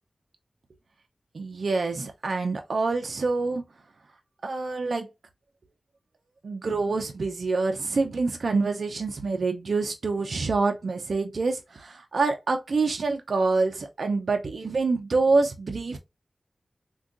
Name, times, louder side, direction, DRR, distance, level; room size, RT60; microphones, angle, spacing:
voice 1, 1.3-3.6 4.4-5.1 6.4-16.0, right 3 dB, 80° right, 0.4 m, -26 dB
3.5 x 2.2 x 2.4 m
cardioid pair, 45°, 0 cm